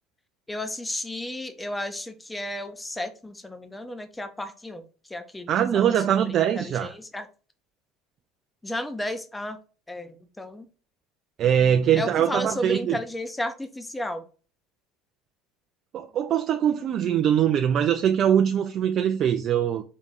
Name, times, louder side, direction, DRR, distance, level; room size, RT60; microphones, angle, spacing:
voice 1, 0.5-7.3 8.6-9.6 9.9-10.7 12.0-14.3, left 1 dB, 10° left, 0.7 m, -33 dB
voice 2, 5.5-6.9 11.4-13.0 15.9-19.8, right 9 dB, 45° right, 0.3 m, -22 dB
3.7 x 2.9 x 4.2 m
figure-of-eight pair, 65°, 0 cm